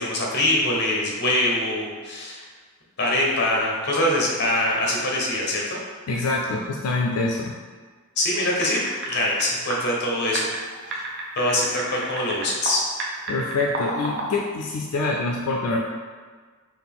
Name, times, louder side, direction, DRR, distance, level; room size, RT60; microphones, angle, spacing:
voice 1, 0.0-2.4 3.0-5.8 8.2-8.8 9.1-10.5 10.8-11.1 11.4-12.8, left 1 dB, 50° left, -2 dB, 0.9 m, -23 dB
voice 2, 6.1-7.6 13.3-15.8, left 3 dB, 80° left, 0 dB, 0.4 m, -25 dB
sound 1, 8.6-9.4 9.7-9.8 10.3-12.7 13.0-14.4, right 3 dB, 50° right, 0.6 m, -30 dB
4.1 x 2.4 x 3.5 m, 1.5 s
head